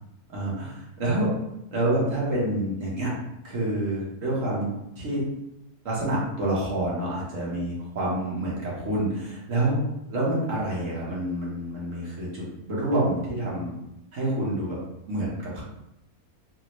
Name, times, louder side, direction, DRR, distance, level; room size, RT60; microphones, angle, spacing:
voice 1, 0.3-1.3 1.7-3.1 3.4-4.7 5.0-5.2 5.8-9.8 10.1-13.7 14.1-14.8 15.1-15.6, right 1 dB, 60° right, -5 dB, 1.3 m, -27 dB
4.0 x 2.0 x 3.0 m, 0.87 s
omnidirectional pair, 1.6 m